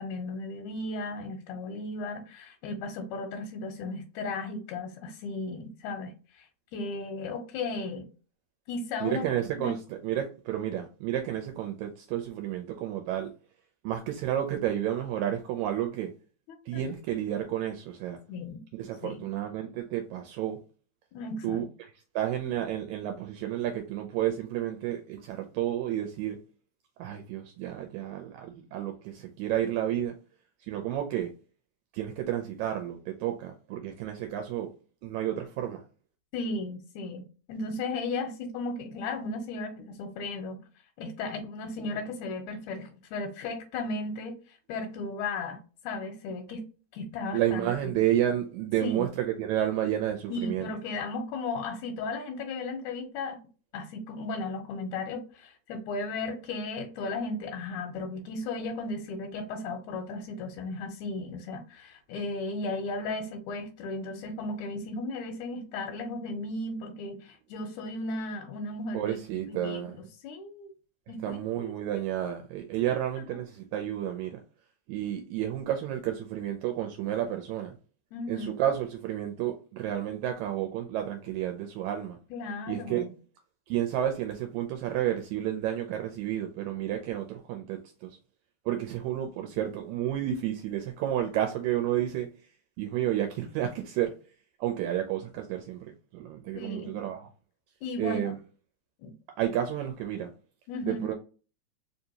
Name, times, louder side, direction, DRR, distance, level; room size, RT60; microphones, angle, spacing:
voice 1, 0.0-6.5 6.7-8.1 8.7-9.3 9.6-9.8 16.7-16.8 18.3-18.6 19.0-19.2 21.1-21.7 36.3-37.2 37.5-40.6 41.0-46.6 46.9-48.0 48.8-49.1 50.3-53.4 53.7-69.2 69.5-70.7 71.1-71.7 78.1-78.5 82.3-83.1 96.6-97.0 97.8-98.3 99.0-99.1 100.7-101.1, left 3 dB, 85° left, 2.0 m, -35 dB
voice 2, 9.0-13.3 13.8-16.1 16.7-18.2 18.8-20.6 21.4-21.6 22.2-26.4 27.0-30.2 30.7-31.3 31.9-34.7 35.0-35.8 47.3-50.7 68.9-70.0 71.2-74.4 74.9-77.7 78.3-82.2 82.7-83.1 83.7-88.2 88.7-92.3 92.8-94.1 94.6-95.9 96.1-97.3 98.0-98.4 99.4-100.3 100.8-101.1, right 11 dB, 80° right, 1.8 m, -31 dB
4.5 x 2.7 x 2.7 m
omnidirectional pair, 3.4 m